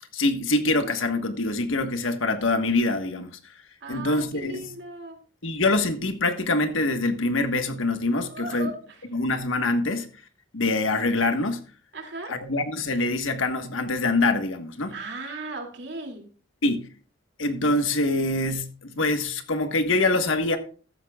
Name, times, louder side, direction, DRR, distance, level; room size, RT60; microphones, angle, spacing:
voice 1, 0.1-3.3 3.9-4.7 5.4-8.7 9.1-10.1 10.5-11.6 12.3-15.0 16.6-16.9 17.4-20.6, left 2 dB, 85° left, 1.4 m, -24 dB
voice 2, 3.8-5.2 8.3-9.0 11.9-12.3 14.9-16.3, right 2 dB, 60° right, 2.6 m, -37 dB
15.0 x 13.0 x 2.4 m
head